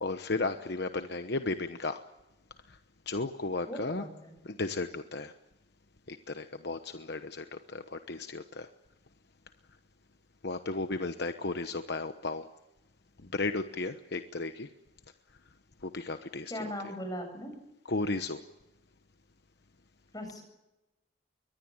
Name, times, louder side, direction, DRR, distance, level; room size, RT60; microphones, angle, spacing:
voice 1, 0.0-2.0 3.1-4.0 4.4-5.3 6.1-8.7 10.4-12.5 13.3-14.7 15.8-16.7 17.9-18.4, left 3 dB, 60° left, 8 dB, 1.1 m, -34 dB
voice 2, 3.7-4.3 16.5-17.5 20.1-20.4, equal, 20° left, 5 dB, 7.5 m, -39 dB
23.5 x 19.5 x 8.9 m, 0.95 s
head